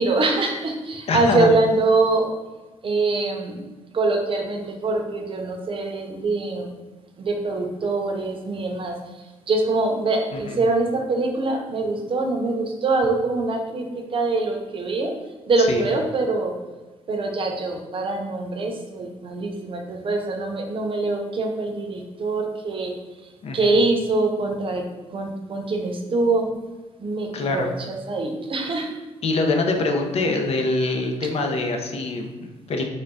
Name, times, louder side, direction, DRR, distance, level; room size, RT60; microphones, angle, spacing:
voice 1, 0.0-2.3 2.8-3.6 3.9-6.7 7.2-9.0 9.5-15.1 15.5-16.5 17.1-22.9 23.5-26.5 27.0-28.9, right 3 dB, 45° right, 3 dB, 0.6 m, -24 dB
voice 2, 1.1-1.5 10.5-10.6 15.7-15.8 23.4-23.7 27.3-27.7 29.2-32.9, left 3 dB, 55° left, 3 dB, 0.6 m, -24 dB
3.8 x 2.2 x 3.6 m, 1.2 s
cardioid pair, 95°, 12 cm